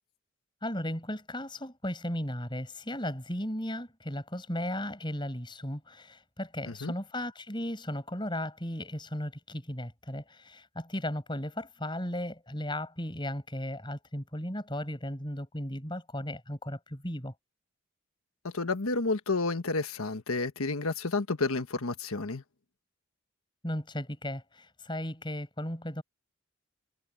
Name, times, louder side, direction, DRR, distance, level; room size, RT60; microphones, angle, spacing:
voice 1, 0.6-17.3 23.6-26.0, left 1 dB, 20° left, 6.5 m, -36 dB
voice 2, 18.4-22.4, left 3 dB, 85° left, 1.4 m, -30 dB
head